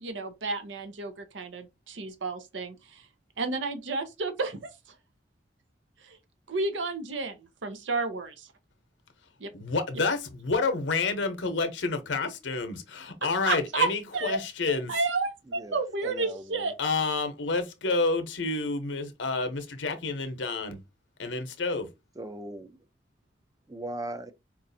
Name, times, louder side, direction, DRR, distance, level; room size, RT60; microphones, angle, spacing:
voice 1, 0.0-3.0 3.4-4.7 6.0-6.2 6.5-7.4 7.6-8.5 9.4-9.5 13.2-14.4 14.7-16.7, right 3 dB, 90° right, 0.7 m, -31 dB
voice 2, 9.5-15.0 16.8-20.8 21.2-21.9, left 3 dB, 80° left, 0.8 m, -29 dB
voice 3, 15.5-16.7 22.2-22.7 23.7-24.3, right 1 dB, 20° right, 0.4 m, -39 dB
4.5 x 2.4 x 2.6 m
head